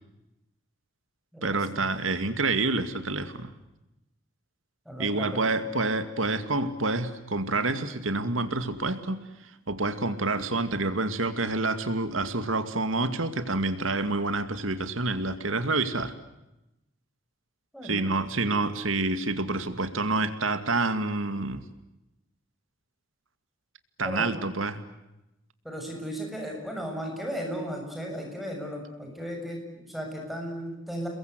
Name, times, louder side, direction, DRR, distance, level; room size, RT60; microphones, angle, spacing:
voice 1, 1.4-3.5 5.0-16.1 17.8-21.6 24.0-24.8, right 3 dB, 80° right, 10 dB, 2.3 m, -28 dB
voice 2, 4.9-5.4 17.7-18.1 24.0-24.3 25.6-31.1, equal, ahead, 1 dB, 7.0 m, -35 dB
29.5 x 22.0 x 8.1 m, 0.92 s
head